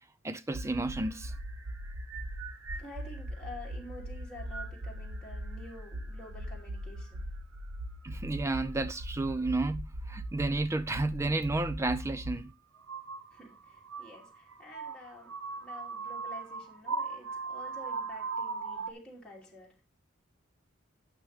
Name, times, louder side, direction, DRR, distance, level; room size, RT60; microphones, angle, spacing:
voice 1, 0.2-1.3 8.0-12.5, right 2 dB, 15° right, 0.4 m, -32 dB
sound 1, 0.5-12.4 12.8-18.9, right 2 dB, 80° right, 0.9 m, -39 dB
voice 2, 2.7-7.3 13.3-19.8, left 2 dB, 5° left, 2.9 m, -49 dB
12.0 x 7.4 x 3.4 m
head